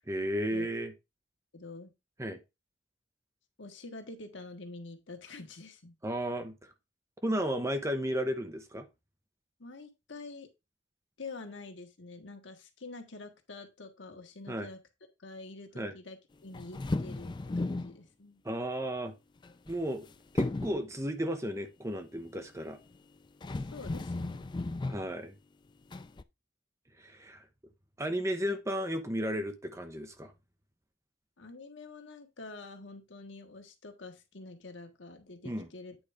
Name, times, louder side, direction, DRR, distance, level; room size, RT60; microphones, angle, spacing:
voice 1, 0.1-0.9 2.2-2.4 6.0-6.7 7.2-8.9 14.5-14.7 15.8-15.9 18.4-19.1 19.7-20.1 20.3-22.8 24.9-25.3 27.0-27.5 28.0-30.3 35.4-35.7, equal, 15° right, 0.9 m, -34 dB
voice 2, 1.5-1.9 3.6-6.0 9.6-10.5 11.2-14.8 15.2-18.4 23.5-24.5 31.4-36.0, left 3 dB, 75° left, 1.5 m, -47 dB
sound 1, 16.5-18.0 19.4-20.0 20.4-20.9 22.9-23.0 23.4-25.1 25.9-26.2, left 2 dB, 25° left, 0.4 m, -35 dB
8.8 x 3.4 x 4.9 m
head